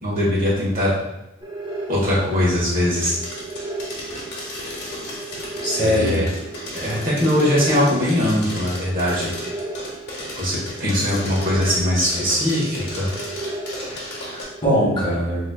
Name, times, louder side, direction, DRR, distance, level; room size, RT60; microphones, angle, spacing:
voice 1, 0.0-0.9 1.9-3.2 5.8-6.2 6.7-9.3 10.4-13.1, left 1 dB, 45° right, -6 dB, 1.2 m, -21 dB
sound 1, 1.4-15.0, right 2 dB, 20° right, 0.5 m, -35 dB
sound 2, 2.9-14.4, left 1 dB, 50° left, 0.9 m, -35 dB
voice 2, 5.6-6.2 13.9-15.5, equal, 25° left, -6 dB, 1.0 m, -22 dB
4.0 x 2.9 x 2.3 m, 0.89 s
head